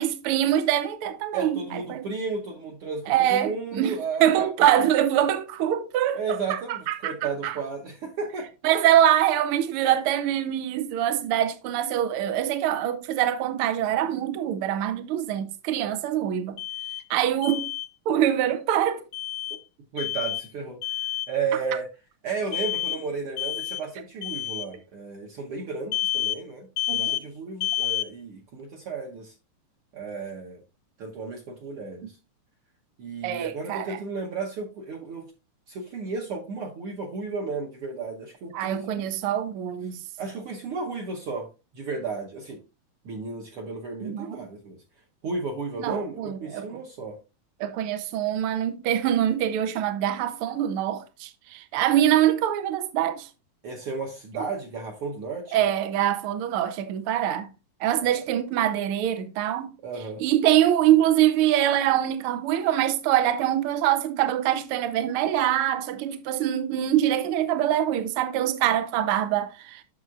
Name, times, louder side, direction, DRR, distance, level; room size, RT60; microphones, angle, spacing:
voice 1, 0.0-2.0 3.1-7.1 7.4-7.6 8.6-16.6 17.1-17.7 18.1-19.0 26.9-27.2 33.2-34.0 38.5-40.0 44.0-44.4 45.8-46.7 47.6-53.3 55.5-57.5 57.8-59.7 60.2-69.8, right 11 dB, 85° right, 1.2 m, -24 dB
voice 2, 1.3-4.5 6.1-8.5 19.9-21.0 21.3-21.9 22.2-29.3 29.9-30.6 31.0-32.2 33.0-35.3 35.7-39.0 40.2-41.5 41.7-42.6 43.0-44.8 45.2-47.2 53.6-55.6 58.0-58.1 59.8-60.2, right 4 dB, 65° right, 1.6 m, -33 dB
Alarm, 16.6-17.0 17.4-17.9 19.1-19.6 20.0-20.5 20.8-21.3 22.5-23.0 23.4-23.8 24.2-24.7 25.9-26.4 26.8-27.2 27.6-28.1, left 14 dB, 75° left, 1.8 m, -29 dB
9.3 x 6.5 x 2.4 m
omnidirectional pair, 3.4 m